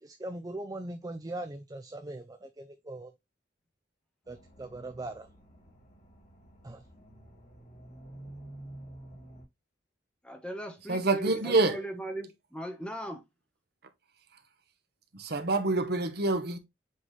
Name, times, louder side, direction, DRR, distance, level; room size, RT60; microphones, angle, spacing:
voice 1, 0.0-3.1 4.3-5.3 6.6-6.8, right 2 dB, 20° right, 0.5 m, -40 dB
sound 1, 4.2-9.4, right 1 dB, 40° left, 3.3 m, -50 dB
voice 2, 10.2-13.2, right 1 dB, 5° left, 1.2 m, -38 dB
voice 3, 10.9-11.8 15.1-16.6, right 2 dB, 60° right, 1.1 m, -26 dB
7.6 x 4.0 x 3.2 m
head